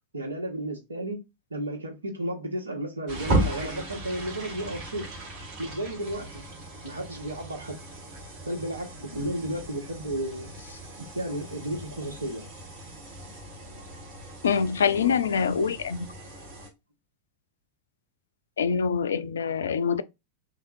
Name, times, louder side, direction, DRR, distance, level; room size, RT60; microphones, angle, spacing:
voice 1, 0.1-1.2 1.5-5.1 5.6-6.4 6.8-7.8 8.4-10.5 11.0-12.4, right 1 dB, 75° right, 1.1 m, -33 dB
sound 1, 3.1-16.7, right 1 dB, 40° right, 1.3 m, -36 dB
voice 2, 14.4-16.1 18.6-20.0, left 6 dB, 65° left, 0.3 m, -25 dB
3.5 x 2.8 x 2.6 m
figure-of-eight pair, 90°, 0 cm